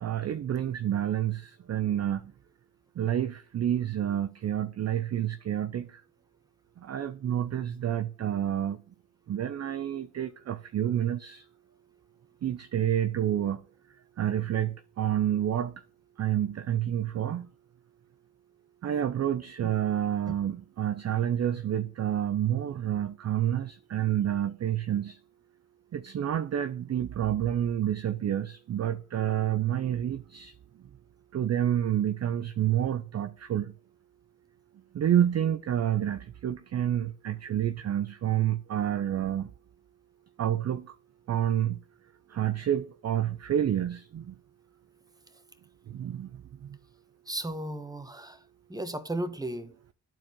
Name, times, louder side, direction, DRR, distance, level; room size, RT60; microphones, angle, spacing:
voice 1, 0.0-2.3 3.0-6.0 6.8-8.8 9.3-11.4 12.4-13.6 14.2-15.8 16.2-17.5 18.8-25.2 25.9-30.5 31.3-33.7 34.9-39.5 40.4-40.9 41.3-41.8 42.3-44.4 45.9-46.8, right 10 dB, 35° right, 0.5 m, -29 dB
voice 2, 47.3-48.4 48.7-49.7, right 1 dB, 10° right, 1.1 m, -35 dB
12.0 x 4.5 x 3.1 m
hypercardioid pair, 55°, 48 cm